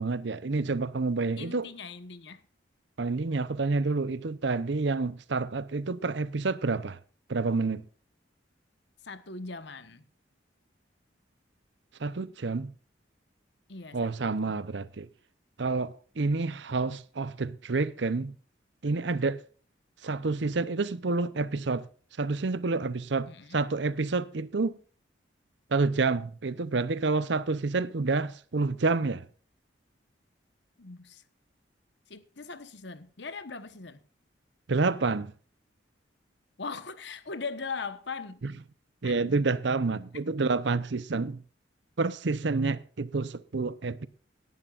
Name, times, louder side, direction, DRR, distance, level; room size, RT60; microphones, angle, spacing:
voice 1, 0.0-1.7 3.0-7.0 7.3-7.9 12.0-12.7 13.9-15.1 15.6-18.3 18.8-19.4 20.0-21.9 22.2-24.8 25.7-29.2 34.7-35.3 39.0-41.4 42.0-44.1, right 3 dB, 65° right, 0.7 m, -28 dB
voice 2, 1.4-2.4 9.0-10.1 13.7-14.5 23.3-23.6 30.8-31.2 32.1-34.0 36.6-38.4 39.0-39.1, left 4 dB, 65° left, 1.1 m, -40 dB
17.5 x 11.0 x 2.5 m
head